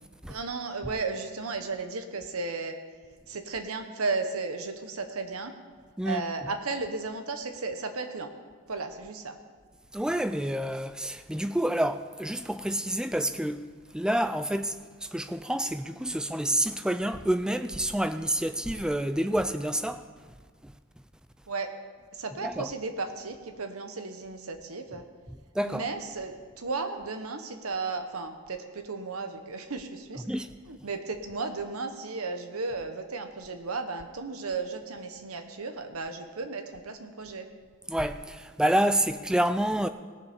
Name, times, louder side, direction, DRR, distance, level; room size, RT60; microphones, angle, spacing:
voice 1, 0.3-2.8 3.3-5.5 6.0-8.3 8.7-9.4 21.5-21.7 22.1-25.1 25.6-30.2 30.7-37.5, right 3 dB, 80° right, 1.1 m, -34 dB
voice 2, 9.9-13.6 13.9-20.0 20.6-20.7 22.4-22.7 25.5-25.9 30.3-30.5 37.9-39.9, right 1 dB, 5° right, 0.3 m, -28 dB
18.0 x 7.0 x 5.2 m
head